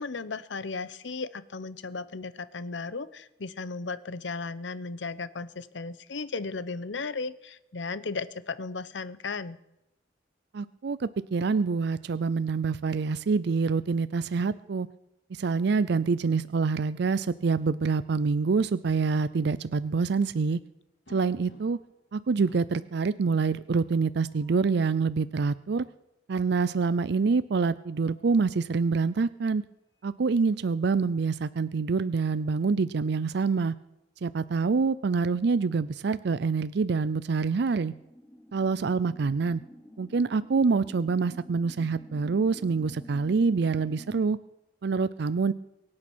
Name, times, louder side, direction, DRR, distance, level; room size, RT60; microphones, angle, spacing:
voice 1, 0.0-9.6, left 4 dB, 85° left, 16 dB, 0.8 m, -35 dB
voice 2, 10.5-14.9 15.3-20.6 21.1-21.8 22.1-25.9 26.3-29.6 30.0-33.7 34.2-37.9 38.5-39.6 40.0-44.4 44.8-45.5, right 4 dB, 65° right, 16 dB, 0.5 m, -26 dB
sound 1, 21.1-22.0 22.4-22.8 24.1-24.8 27.5-28.5 29.9-30.1 30.5-30.6 32.1-33.4, left 1 dB, 70° left, 2.3 m, -58 dB
sound 2, 37.5-44.2, left 1 dB, 10° left, 1.1 m, -49 dB
23.0 x 8.8 x 6.2 m, 0.91 s
head